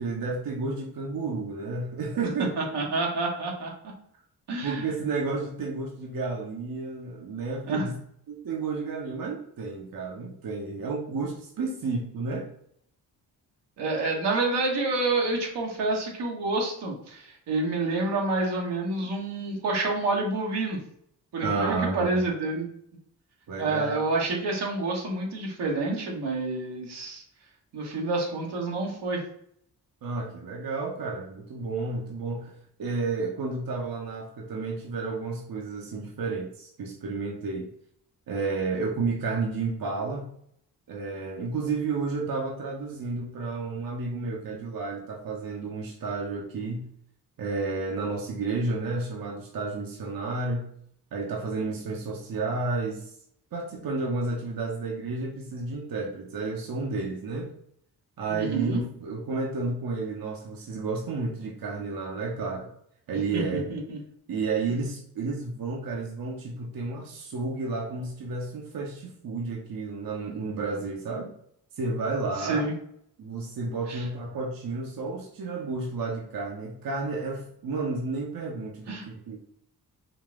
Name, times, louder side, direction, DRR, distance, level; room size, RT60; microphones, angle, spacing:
voice 1, 0.0-2.5 4.6-8.0 8.3-12.5 21.4-22.3 23.5-24.0 30.0-32.5 32.8-37.7 38.3-40.3 40.9-46.9 47.4-50.7 51.1-53.1 53.5-57.5 58.2-62.7 63.1-63.7 64.3-71.3 71.8-72.7 73.2-79.4, right 3 dB, 60° right, -1 dB, 0.8 m, -31 dB
voice 2, 2.6-3.7 4.5-4.9 7.7-7.9 13.8-20.8 21.3-22.7 23.6-27.2 27.7-29.2 58.3-58.8 63.3-64.0 72.4-72.7 73.9-74.0 78.9-79.1, right 2 dB, 80° right, -1 dB, 1.1 m, -28 dB
3.9 x 2.4 x 3.5 m, 0.69 s
cardioid pair, 55°, 40 cm